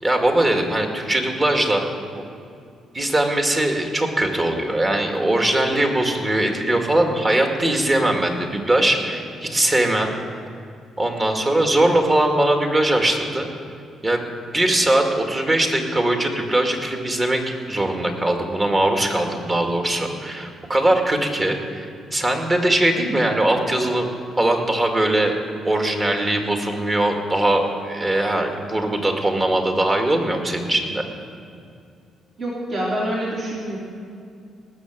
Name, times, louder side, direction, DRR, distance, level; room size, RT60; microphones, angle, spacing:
voice 1, 0.0-1.8 2.2-2.3 2.9-10.1 11.0-13.5 14.0-14.3 14.5-17.4 17.7-21.9 22.1-24.1 24.4-25.3 25.6-31.1, right 1 dB, 30° right, 3 dB, 2.2 m, -21 dB
voice 2, 32.4-33.8, right 1 dB, 45° right, -5 dB, 3.1 m, -26 dB
18.5 x 7.0 x 7.9 m, 2.4 s
cardioid pair, 90°, 0 cm